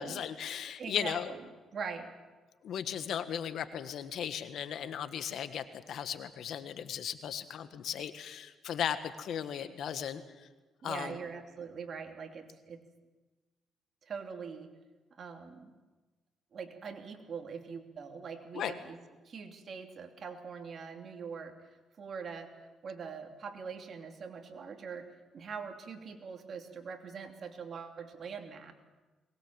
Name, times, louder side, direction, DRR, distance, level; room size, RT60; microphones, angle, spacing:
voice 1, 0.0-1.3 2.6-10.2 10.8-11.2 18.5-18.7, left 9 dB, 70° left, 10 dB, 1.5 m, -36 dB
voice 2, 0.8-1.5 1.7-2.1 10.8-12.8 14.0-14.7 15.2-15.7 16.5-19.0 19.2-21.5 22.0-22.5 22.8-25.1 25.3-28.7, right 5 dB, 50° right, 4 dB, 2.9 m, -43 dB
22.0 x 20.0 x 7.6 m, 1.2 s
cardioid pair, 90°, 0 cm